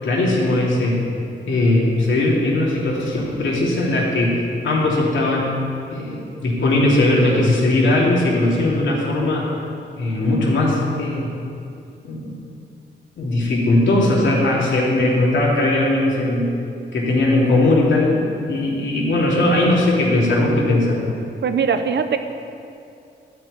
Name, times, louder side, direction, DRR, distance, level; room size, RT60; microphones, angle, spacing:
voice 1, 0.0-1.0 1.5-5.5 5.9-9.5 10.0-11.3 12.0-12.3 13.2-16.5 16.9-18.2 18.5-21.0, left 2 dB, 75° left, -5 dB, 3.1 m, -19 dB
voice 2, 21.4-22.2, right 6 dB, 65° right, 8 dB, 0.9 m, -20 dB
12.5 x 6.0 x 8.7 m, 2.6 s
cardioid pair, 65°, 20 cm